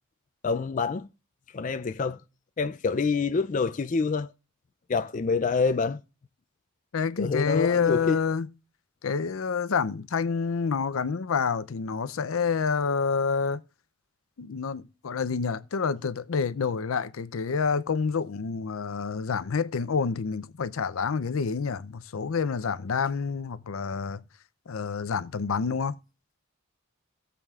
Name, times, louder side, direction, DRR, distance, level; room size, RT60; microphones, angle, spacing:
voice 1, 0.4-1.1 1.5-2.2 2.6-4.3 4.9-6.0 7.2-8.2, left 4 dB, 40° left, 0.4 m, -26 dB
voice 2, 6.9-8.5 9.0-13.6 14.4-24.2 24.7-26.0, left 5 dB, 85° left, 0.5 m, -28 dB
17.5 x 7.1 x 2.4 m
head